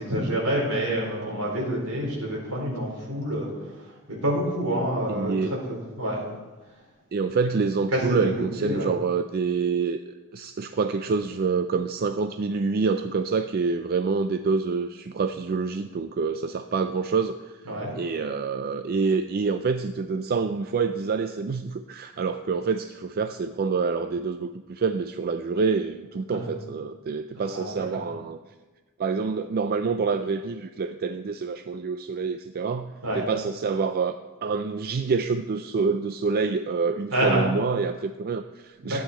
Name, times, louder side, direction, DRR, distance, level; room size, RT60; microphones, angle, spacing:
voice 1, 0.0-3.5 3.8-5.3 5.7-6.2 7.9-8.9 17.7-17.9 26.3-26.4 27.4-28.1 33.0-33.2 37.1-37.4 38.8-39.0, right 1 dB, 75° right, -3 dB, 4.2 m, -27 dB
voice 2, 5.1-5.5 7.1-17.5 18.0-28.4 29.0-34.1 34.4-39.0, right 4 dB, 45° right, 9 dB, 0.4 m, -27 dB
13.0 x 9.4 x 4.4 m, 1.2 s
head